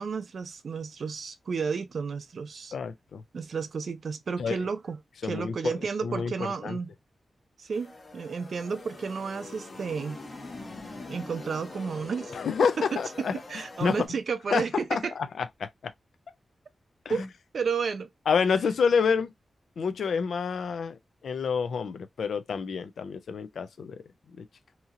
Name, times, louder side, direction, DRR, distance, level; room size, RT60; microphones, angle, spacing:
voice 1, 0.0-2.7 3.3-6.9 7.6-10.2 11.1-12.4 12.8-15.1 17.1-17.3 17.5-18.1, right 5 dB, 55° right, 0.5 m, -32 dB
voice 2, 2.7-3.2 4.4-4.6 5.2-5.7 6.0-6.8 12.3-13.4 13.8-14.1 14.5-14.6 14.9-15.9 17.1-17.3 18.3-19.3 19.8-21.0 21.2-24.0 24.4-24.5, left 6 dB, 85° left, 0.4 m, -28 dB
sound 1, 7.7-14.1, left 2 dB, 35° left, 0.9 m, -43 dB
2.8 x 2.7 x 2.4 m
wide cardioid pair, 170°, 0 cm